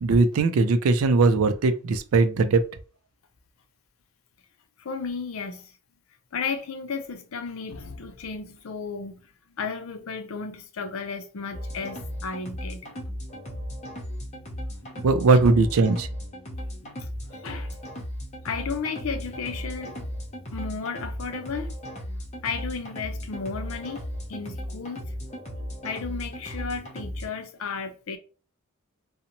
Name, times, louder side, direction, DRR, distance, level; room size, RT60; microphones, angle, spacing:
voice 1, 0.0-2.6 15.0-16.1, right 3 dB, 75° right, 0.4 m, -20 dB
voice 2, 4.8-5.7 6.3-9.2 9.6-12.8 16.5-17.1 17.4-17.7 18.4-20.0 20.5-21.7 22.4-25.1 25.8-28.2, left 5 dB, 70° left, 0.5 m, -34 dB
sound 1, 11.5-27.3, equal, 30° left, 0.7 m, -36 dB
2.6 x 2.0 x 2.8 m
head